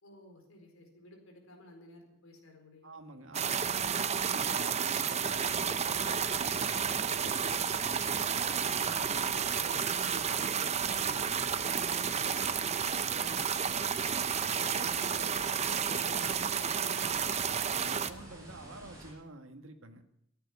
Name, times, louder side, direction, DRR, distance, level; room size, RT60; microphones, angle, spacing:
voice 1, 0.0-2.9 8.3-8.8 14.5-15.0, left 2 dB, 80° left, 3 dB, 4.4 m, -56 dB
voice 2, 2.8-7.5 8.7-12.6 13.0-13.8 14.5-17.4 17.8-20.0, right 2 dB, 70° right, 5 dB, 1.7 m, -48 dB
sound 1, 3.3-18.1, right 7 dB, 30° right, 0.7 m, -31 dB
sound 2, 5.2-19.1, equal, 15° right, 6.3 m, -50 dB
14.5 x 9.6 x 9.4 m, 0.74 s
head